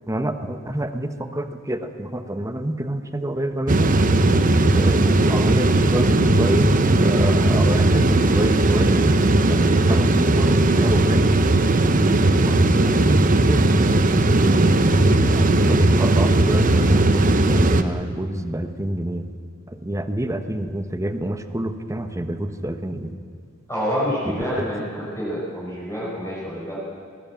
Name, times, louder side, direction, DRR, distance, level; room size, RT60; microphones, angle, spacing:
voice 1, 0.1-3.9 4.7-11.4 11.9-13.7 15.3-19.3 19.7-23.1 24.6-24.7, right 1 dB, 15° right, 8 dB, 1.1 m, -28 dB
sound 1, 3.7-17.8, right 2 dB, 40° right, 0.9 m, -17 dB
voice 2, 14.8-15.3 23.7-26.8, equal, 15° left, -7 dB, 5.4 m, -28 dB
20.0 x 18.5 x 7.5 m, 2.2 s
head